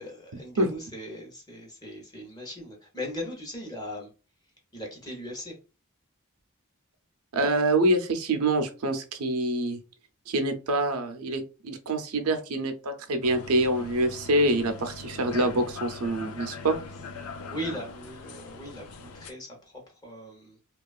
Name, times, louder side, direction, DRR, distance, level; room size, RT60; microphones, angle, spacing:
voice 1, 0.0-4.1 4.7-5.6 17.5-20.6, equal, 20° left, 0.8 m, -39 dB
voice 2, 7.3-9.8 10.3-16.8, right 1 dB, 90° right, 0.5 m, -26 dB
sound 1, 13.2-19.3, left 4 dB, 80° left, 0.4 m, -41 dB
2.9 x 2.3 x 2.3 m
head